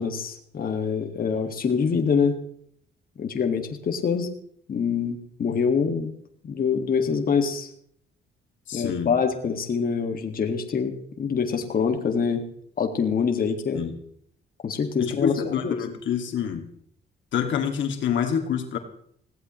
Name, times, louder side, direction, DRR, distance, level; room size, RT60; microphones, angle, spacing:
voice 1, 0.0-2.4 3.2-4.3 4.7-6.1 6.4-7.7 8.7-12.5 12.8-13.8 14.6-15.8, left 6 dB, 45° left, 4 dB, 1.9 m, -25 dB
voice 2, 8.7-9.1 13.7-13.9 15.0-16.6 17.3-18.8, left 8 dB, 70° left, 3 dB, 2.1 m, -27 dB
20.5 x 16.0 x 3.1 m, 0.65 s
cardioid pair, 90°, 20 cm